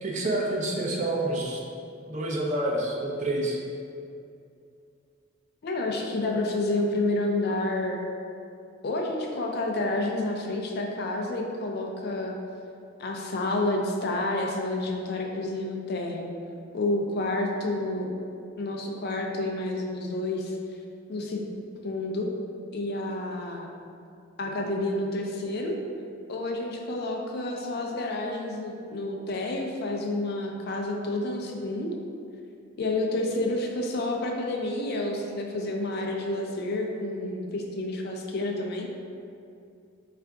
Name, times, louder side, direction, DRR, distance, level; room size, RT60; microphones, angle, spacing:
voice 1, 0.0-1.6 2.1-3.6, right 1 dB, 40° right, -2 dB, 0.5 m, -28 dB
voice 2, 5.6-8.0 8.8-12.4 13.0-16.3 16.7-18.1 18.6-20.6 21.1-21.4 21.8-22.3 22.7-23.7 24.4-25.7 26.3-32.0 32.8-38.9, left 2 dB, 55° left, 1 dB, 0.4 m, -29 dB
3.4 x 2.5 x 4.5 m, 2.5 s
head